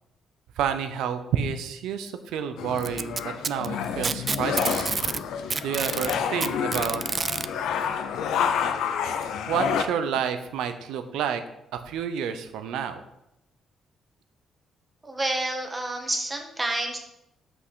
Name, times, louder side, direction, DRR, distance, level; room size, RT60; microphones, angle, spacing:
voice 1, 0.6-4.9 5.6-7.0 9.5-11.4 11.7-13.0, right 7 dB, 85° right, 9 dB, 0.8 m, -29 dB
sound 1, 2.6-9.8, left 7 dB, 80° left, 0.7 m, -29 dB
Packing tape duct tape, 2.8-5.2 5.5-7.5 8.6-8.7 9.2-9.3 10.2-10.3, right 5 dB, 35° right, 0.4 m, -28 dB
voice 2, 15.0-17.0, right 1 dB, 20° right, 3 dB, 1.6 m, -29 dB
6.0 x 5.5 x 6.3 m, 0.84 s
cardioid pair, 90°, 0 cm